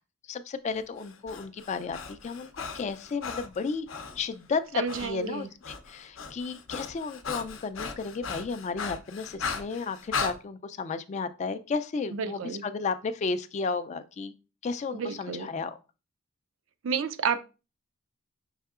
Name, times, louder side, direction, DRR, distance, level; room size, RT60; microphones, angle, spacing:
voice 1, 0.3-3.9 4.2-14.3 14.6-15.8, left 4 dB, 35° left, 0.3 m, -33 dB
Breathing, 1.0-4.2 4.9-5.1 5.4-10.4, left 5 dB, 75° left, 0.6 m, -37 dB
voice 2, 4.7-5.5 12.1-12.6 14.9-15.5 16.8-17.4, right 6 dB, 75° right, 0.4 m, -31 dB
5.6 x 3.5 x 2.4 m
head